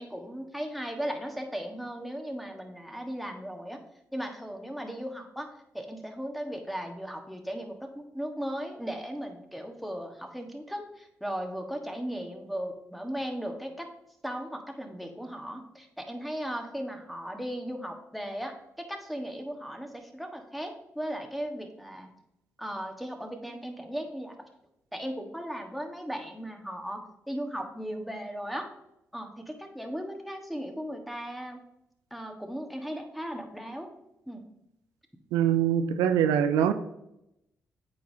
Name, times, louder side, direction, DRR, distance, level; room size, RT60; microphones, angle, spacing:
voice 1, 0.0-3.8 4.1-5.5 5.7-13.9 14.2-22.1 22.6-24.5 24.9-28.7 29.1-31.6 32.1-33.9 34.3-34.5, equal, ahead, 3 dB, 1.3 m, -37 dB
voice 2, 35.3-36.7, right 9 dB, 90° right, 9 dB, 0.3 m, -23 dB
8.4 x 4.7 x 2.7 m, 0.83 s
supercardioid pair, 45°, 6 cm